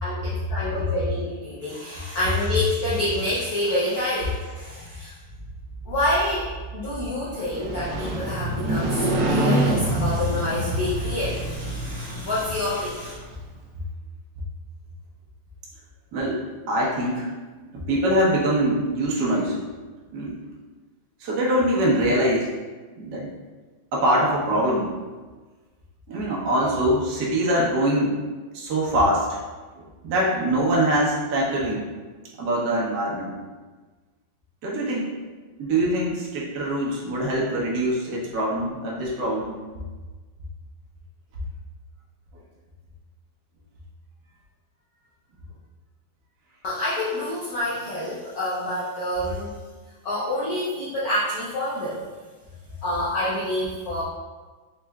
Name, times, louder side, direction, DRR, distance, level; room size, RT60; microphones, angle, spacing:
voice 1, 0.0-5.1 5.9-13.1 46.6-49.6 50.0-52.0 52.8-54.0, left 1 dB, 75° left, -9 dB, 0.8 m, -27 dB
Motorcycle, 7.4-13.3, right 1 dB, 85° right, 0.9 m, -26 dB
voice 2, 16.1-17.3 17.7-19.6 20.1-20.4 21.2-22.5 23.0-23.3 23.9-24.9 26.1-28.2 28.5-29.4 29.7-31.9 32.4-33.3 34.6-35.2 35.6-39.5, right 1 dB, 60° right, -4 dB, 1.1 m, -23 dB
4.6 x 3.0 x 2.2 m, 1.3 s
omnidirectional pair, 2.4 m